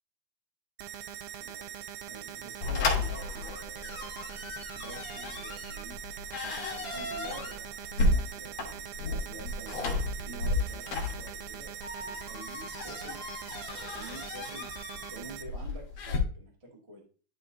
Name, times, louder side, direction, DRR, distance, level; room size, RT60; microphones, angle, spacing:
sound 1, 0.8-15.4, right 9 dB, 85° right, 2.4 m, -42 dB
voice 1, 1.3-1.7 2.0-6.0 6.7-11.7 12.0-13.4 13.9-17.0, right 1 dB, 35° right, -2 dB, 0.5 m, -49 dB
sound 2, 2.6-16.2, left 2 dB, 60° left, 1.9 m, -34 dB
11.0 x 4.3 x 2.6 m, 0.40 s
omnidirectional pair, 4.3 m